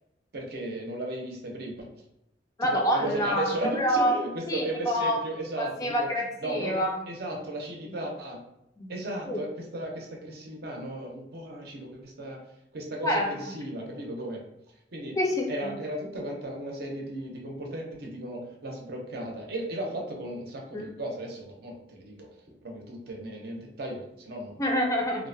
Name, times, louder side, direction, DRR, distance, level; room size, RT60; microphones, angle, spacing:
voice 1, 0.3-1.9 2.6-6.1 6.4-8.4 8.9-12.4 12.7-14.4 14.9-15.2 15.5-22.3 22.6-24.7 25.2-25.3, right 1 dB, 60° right, 0 dB, 0.6 m, -35 dB
voice 2, 2.6-4.2 4.5-5.2 5.6-6.9 7.9-8.0 8.8-8.9 9.3-9.4 13.0-13.5 15.2-15.8 20.7-20.9 24.6-25.2, equal, 20° left, 0 dB, 0.3 m, -27 dB
2.6 x 2.0 x 2.6 m, 0.84 s
head